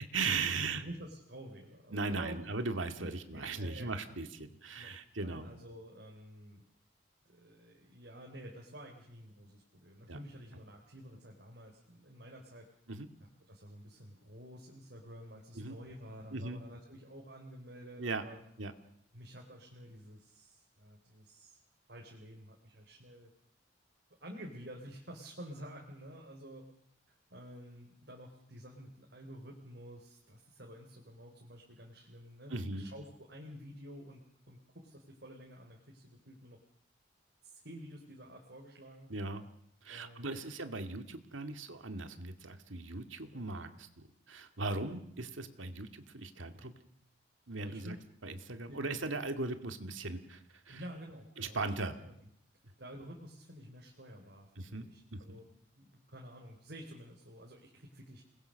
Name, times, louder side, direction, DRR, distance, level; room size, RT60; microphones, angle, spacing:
voice 1, 0.1-0.8 1.9-5.5 10.1-10.2 12.9-13.1 15.6-15.8 16.3-16.6 18.0-18.2 18.6-18.7 32.5-32.9 39.1-39.5 39.8-43.9 44.3-46.7 47.5-48.0 48.2-50.4 50.7-50.8 51.4-52.0 54.6-55.4, right 3 dB, 85° right, 7 dB, 2.2 m, -38 dB
voice 2, 0.8-4.2 4.7-4.9 5.2-6.6 7.3-12.7 13.5-18.4 19.1-21.6 21.9-23.3 24.2-26.7 27.3-34.2 34.5-36.6 37.4-39.1 39.9-40.5 43.2-43.5 44.7-45.0 47.6-48.0 48.3-48.4 48.7-48.8 50.7-52.1 52.8-55.5 55.7-58.2, equal, 60° right, 0 dB, 3.7 m, -50 dB
29.0 x 21.0 x 6.5 m, 0.72 s
head